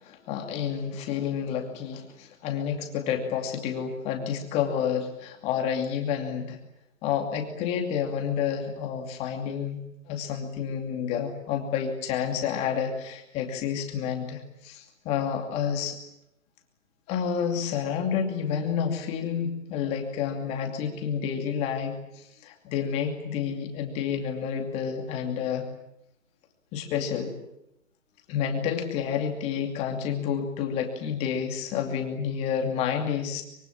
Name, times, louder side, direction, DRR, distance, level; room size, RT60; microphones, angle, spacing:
voice 1, 0.0-6.6 7.0-16.0 17.1-25.7 26.7-27.3 28.3-33.4, left 7 dB, 15° left, 4 dB, 2.6 m, -29 dB
24.5 x 23.5 x 8.6 m, 0.81 s
hypercardioid pair, 165°, 41 cm